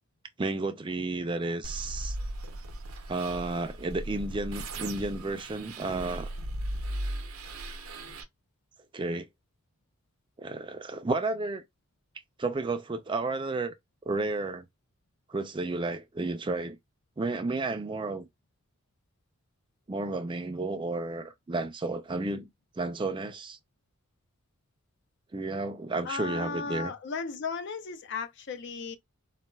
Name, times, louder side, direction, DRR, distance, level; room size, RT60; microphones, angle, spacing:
voice 1, 0.4-2.2 3.1-6.3 8.9-9.3 10.4-11.6 12.4-13.7 14.1-14.7 15.3-16.8 17.2-18.3 19.9-22.5 22.8-23.6 25.3-26.9, right 3 dB, 25° right, 0.4 m, -32 dB
sound 1, 1.6-8.2, right 1 dB, 85° right, 0.7 m, -37 dB
voice 2, 26.1-29.0, left 5 dB, 55° left, 0.5 m, -35 dB
4.1 x 2.3 x 2.2 m
head